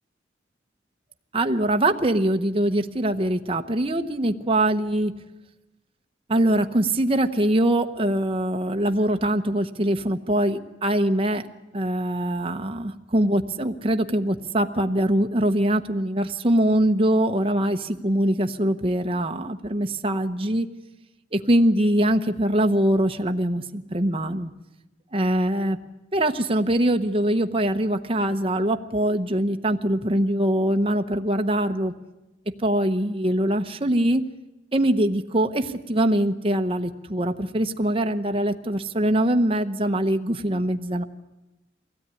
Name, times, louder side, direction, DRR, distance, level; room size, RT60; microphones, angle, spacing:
voice 1, 1.3-5.1 6.3-11.5 11.7-20.7 21.3-24.5 25.1-25.8 26.1-31.9 32.6-34.3 34.7-41.0, right 1 dB, 30° right, 6 dB, 0.9 m, -23 dB
22.5 x 16.5 x 9.7 m, 1.0 s
head